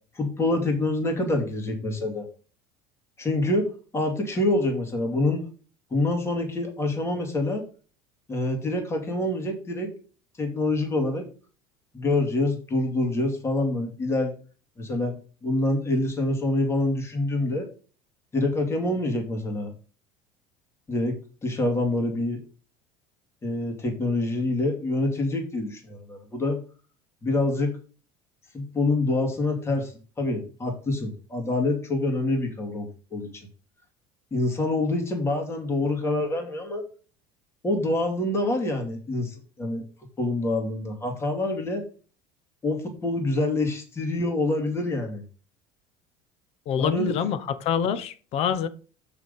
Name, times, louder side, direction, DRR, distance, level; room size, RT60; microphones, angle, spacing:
voice 1, 0.1-2.3 3.2-5.4 5.9-7.6 8.3-9.9 10.4-11.3 11.9-14.3 14.8-15.2 15.4-17.7 18.3-19.7 20.9-21.1 21.4-22.4 23.4-26.6 27.2-27.7 28.5-29.9 30.2-33.5 34.3-36.9 37.6-39.9 40.2-41.8 42.6-45.2 46.8-47.1, left 2 dB, 20° left, 2.5 m, -26 dB
voice 2, 46.7-48.7, left 8 dB, 55° left, 1.0 m, -26 dB
6.5 x 6.2 x 5.4 m
cardioid pair, 130°, 13 cm